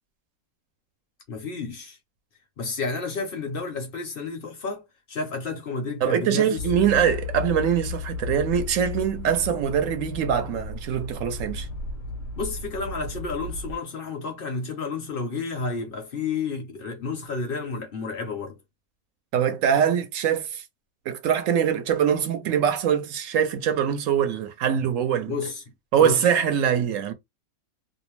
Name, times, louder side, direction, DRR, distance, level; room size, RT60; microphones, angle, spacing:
voice 1, 1.3-2.0 2.6-6.6 12.4-18.6 25.3-25.6 26.0-26.2, left 4 dB, 55° left, 0.6 m, -31 dB
voice 2, 6.0-11.7 19.3-20.6 21.1-25.4 25.9-27.1, right 8 dB, 70° right, 0.9 m, -23 dB
sound 1, 6.6-13.8, left 4 dB, 70° left, 1.0 m, -34 dB
2.5 x 2.0 x 2.9 m
omnidirectional pair, 1.5 m